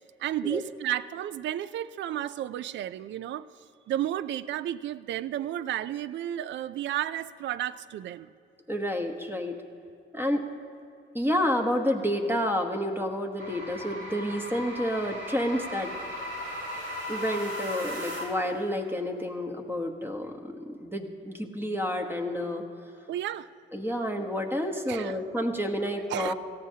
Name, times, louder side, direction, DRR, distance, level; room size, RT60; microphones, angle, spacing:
voice 1, 0.2-3.5 3.9-8.3 23.1-23.5 24.9-25.2 26.1-26.3, right 12 dB, 65° right, 16 dB, 0.4 m, -32 dB
voice 2, 8.7-9.6 10.1-10.4 11.1-15.9 17.1-22.6 23.7-26.3, equal, 10° right, 3 dB, 1.1 m, -29 dB
sound 1, 13.4-18.5, left 1 dB, 85° right, 3.5 m, -37 dB
17.5 x 14.5 x 2.8 m, 2.5 s
cardioid pair, 90°, 20 cm